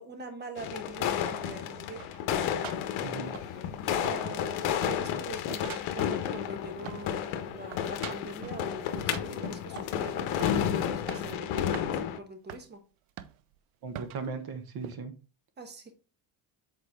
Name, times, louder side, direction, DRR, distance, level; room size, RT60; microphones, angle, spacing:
voice 1, 0.0-2.1 3.9-12.8 15.6-16.0, right 3 dB, 20° right, 1.1 m, -43 dB
sound 1, 0.6-12.2, left 9 dB, 80° left, 1.1 m, -32 dB
sound 2, 2.0-3.8 4.0-4.6 4.8-7.2 7.5-8.6 9.1-10.0 10.4-10.7 10.9-11.4 11.7-11.9 12.5-12.7 13.2-13.6 13.9-14.3 14.8-15.0, right 12 dB, 80° right, 0.8 m, -45 dB
sound 3, 2.6-11.3, left 10 dB, 65° left, 1.0 m, -45 dB
voice 2, 3.0-3.3 13.8-15.1, right 4 dB, 45° right, 1.4 m, -37 dB
7.9 x 4.5 x 3.5 m
cardioid pair, 170°, 49 cm